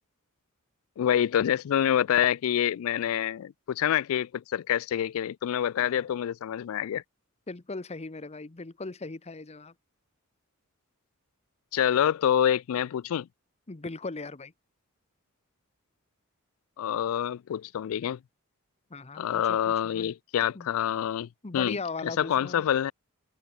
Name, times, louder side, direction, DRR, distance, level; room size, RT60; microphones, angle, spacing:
voice 1, 1.0-7.0 11.7-13.3 16.8-18.2 19.2-21.8 22.0-22.9, left 10 dB, 70° left, 0.3 m, -27 dB
voice 2, 7.5-9.7 13.7-14.5 18.9-20.1 20.5-20.7 21.4-22.7, left 3 dB, 30° left, 0.9 m, -38 dB
head